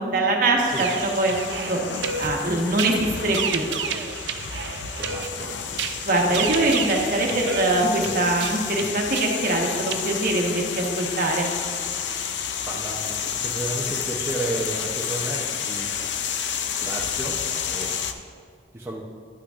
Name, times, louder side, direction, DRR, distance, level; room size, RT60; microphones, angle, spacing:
voice 1, 0.0-1.8 2.2-3.6 6.1-11.5, right 2 dB, 50° right, 0 dB, 1.2 m, -23 dB
sound 1, 0.7-18.1, left 7 dB, 85° left, 0.5 m, -30 dB
sound 2, 0.7-10.0, right 6 dB, 85° right, 0.5 m, -32 dB
voice 2, 5.0-5.5 12.7-15.9 16.8-17.9 18.7-19.0, right 2 dB, 15° right, -4 dB, 0.6 m, -32 dB
11.5 x 8.8 x 2.5 m, 2.2 s
head